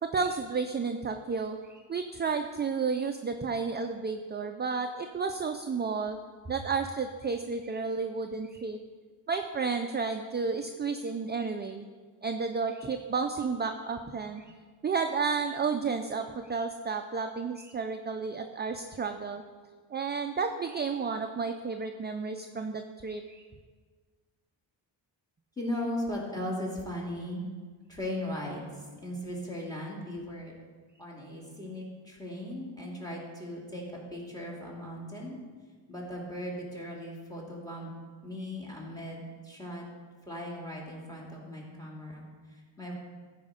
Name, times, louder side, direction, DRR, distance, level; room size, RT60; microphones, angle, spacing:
voice 1, 0.0-6.2 6.5-8.8 9.3-11.8 12.2-14.5 14.8-19.4 19.9-23.4, right 5 dB, 25° right, 6 dB, 0.3 m, -32 dB
voice 2, 25.6-27.4 27.9-30.5 31.0-33.8 34.1-35.4 35.9-37.9 38.2-39.9 40.3-42.9, left 1 dB, 10° left, -2 dB, 2.4 m, -38 dB
15.0 x 5.0 x 5.0 m, 1.5 s
wide cardioid pair, 120°, 48 cm